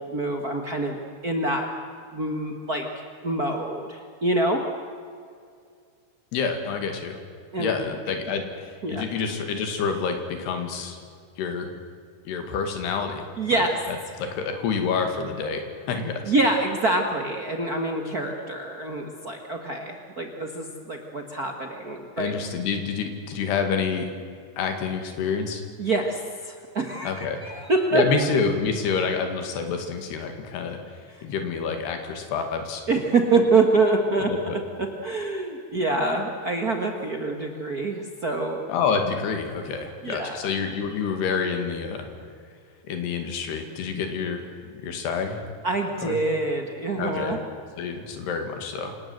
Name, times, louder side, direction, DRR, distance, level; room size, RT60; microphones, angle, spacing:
voice 1, 0.0-1.7 2.1-2.8 3.2-4.6 7.5-7.8 8.8-9.0 13.4-13.8 16.2-22.4 25.8-28.0 31.1-31.2 32.9-38.6 40.0-40.4 45.6-47.4, right 2 dB, 65° right, 3 dB, 0.9 m, -26 dB
voice 2, 6.3-7.2 7.6-11.0 11.4-11.7 12.3-13.3 13.5-16.3 22.2-24.1 24.6-25.6 27.0-27.4 27.9-30.8 31.2-32.8 34.2-34.6 38.7-42.1 42.8-45.4 46.0-46.2 47.0-47.4 47.8-49.0, left 5 dB, 85° left, 6 dB, 4.3 m, -28 dB
27.0 x 18.5 x 8.0 m, 2.3 s
omnidirectional pair, 4.6 m